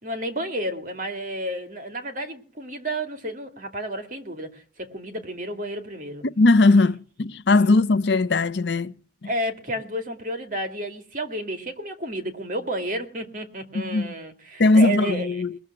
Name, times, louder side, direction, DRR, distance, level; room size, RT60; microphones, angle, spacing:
voice 1, 0.0-6.2 6.7-6.9 7.5-7.7 9.2-15.3, right 1 dB, 45° right, 2.4 m, -31 dB
voice 2, 6.2-8.9 13.7-14.1 14.6-15.6, left 3 dB, 65° left, 0.6 m, -19 dB
20.5 x 7.1 x 7.7 m
head